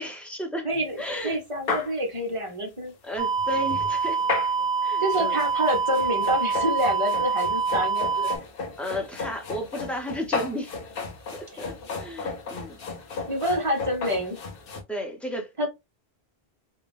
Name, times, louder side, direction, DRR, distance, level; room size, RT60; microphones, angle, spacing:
voice 1, 0.0-0.7 1.0-1.4 3.0-4.2 4.8-5.4 8.8-10.7 11.3-12.8 14.9-15.7, equal, ahead, 0.9 m, -33 dB
voice 2, 0.6-1.0 1.2-2.9 5.0-8.3 13.3-14.4 15.6-15.7, equal, 30° right, 1.1 m, -27 dB
sound 1, 0.7-0.8 1.3-1.4 1.7-1.9 3.2-14.8, left 4 dB, 65° left, 0.9 m, -34 dB
sound 2, 3.2-8.4, right 5 dB, 80° right, 1.0 m, -26 dB
3.6 x 2.4 x 3.4 m
omnidirectional pair, 1.1 m